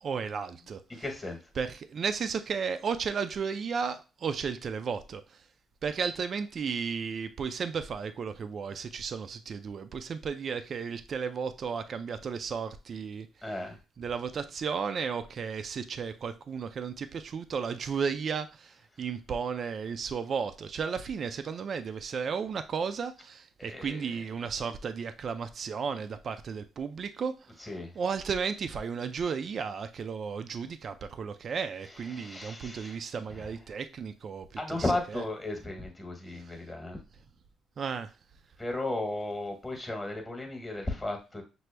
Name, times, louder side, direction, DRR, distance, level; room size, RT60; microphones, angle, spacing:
voice 1, 0.0-0.8 1.6-5.4 5.8-13.3 14.0-27.5 28.0-34.8 35.1-35.2 37.8-38.1, right 6 dB, 50° right, 10 dB, 0.4 m, -34 dB
voice 2, 0.9-1.4 13.4-13.8 18.9-19.0 23.6-24.2 27.6-28.0 31.9-33.0 33.3-33.5 34.6-37.0 38.6-41.4, left 2 dB, 15° left, 2 dB, 1.2 m, -35 dB
6.0 x 2.0 x 3.3 m, 0.30 s
cardioid pair, 90°, 0 cm